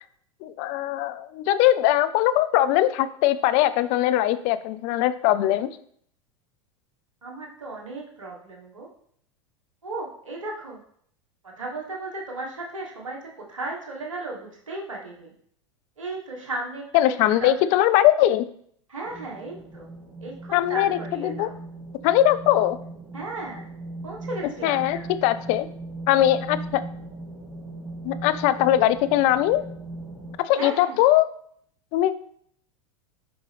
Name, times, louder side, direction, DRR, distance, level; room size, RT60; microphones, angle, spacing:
voice 1, 0.4-5.7 16.9-18.5 20.5-21.5 22.0-22.8 24.6-25.7 26.1-26.9 28.0-29.6 30.4-31.3 31.9-32.1, left 13 dB, 50° left, 14 dB, 0.5 m, -21 dB
voice 2, 7.2-8.9 9.8-10.8 11.4-13.2 13.5-15.3 16.0-17.1 17.4-17.5 18.9-19.9 20.2-21.6 23.1-23.7 24.0-25.1 30.6-31.0, right 2 dB, 85° right, -1 dB, 1.5 m, -35 dB
sound 1, 19.0-30.4, right 2 dB, 5° right, 2.0 m, -39 dB
6.8 x 5.2 x 3.4 m, 0.64 s
hypercardioid pair, 90°, 16 cm